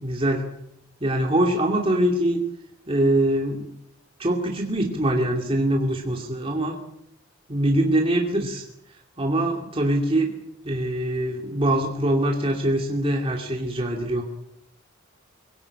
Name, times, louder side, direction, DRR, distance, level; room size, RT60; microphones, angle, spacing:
voice 1, 0.0-0.4 1.0-2.4 2.9-3.7 4.2-6.8 7.5-10.3 10.6-14.2, right 1 dB, 25° right, 1 dB, 2.6 m, -23 dB
23.5 x 17.5 x 8.7 m, 0.78 s
head